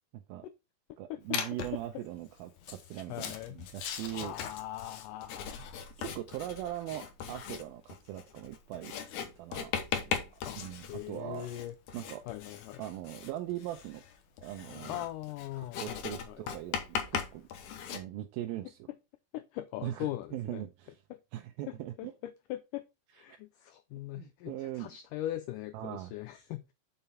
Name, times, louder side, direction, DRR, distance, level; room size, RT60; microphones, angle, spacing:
voice 1, 0.1-0.5 1.0-4.3 6.0-8.9 9.4-10.2 10.6-11.5 11.9-12.2 12.8-14.0 14.4-15.0 15.6-17.5 17.9-18.9 19.8-21.0 21.3-22.1 23.3-23.4 24.1-24.9 25.7-26.1, right 13 dB, 80° right, 2.4 m, -40 dB
Writing, 1.3-1.9 2.6-18.0, left 7 dB, 65° left, 2.1 m, -39 dB
voice 2, 3.1-3.6 4.1-5.8 10.5-10.6 10.9-11.8 12.3-12.8 14.9-16.4 19.3-20.6 21.1-21.2 21.7-22.8 23.2-26.7, left 14 dB, 90° left, 1.8 m, -40 dB
6.8 x 5.5 x 4.3 m
omnidirectional pair, 4.4 m